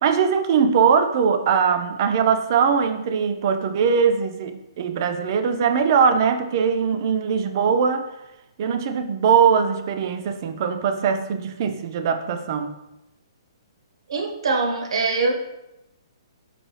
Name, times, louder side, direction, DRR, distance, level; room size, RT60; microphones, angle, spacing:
voice 1, 0.0-8.1 8.6-12.7, right 6 dB, 40° right, 8 dB, 0.3 m, -21 dB
voice 2, 14.1-15.3, right 3 dB, 75° right, 3 dB, 0.7 m, -23 dB
4.2 x 2.6 x 3.1 m, 0.91 s
hypercardioid pair, 160°, 3 cm